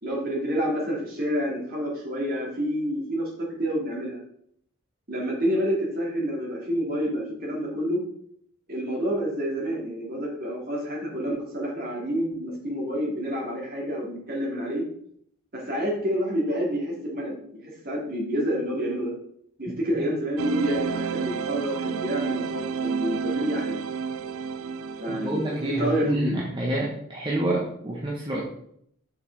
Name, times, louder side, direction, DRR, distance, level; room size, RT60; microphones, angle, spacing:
voice 1, 0.0-4.2 5.1-8.0 8.7-14.8 15.5-19.1 19.6-23.8 25.0-26.4, equal, 45° right, -3 dB, 2.8 m, -28 dB
sound 1, 20.4-26.1, right 6 dB, 90° right, 0.4 m, -30 dB
voice 2, 25.1-28.4, right 1 dB, 25° right, -3 dB, 1.2 m, -28 dB
6.6 x 6.0 x 4.7 m, 0.68 s
head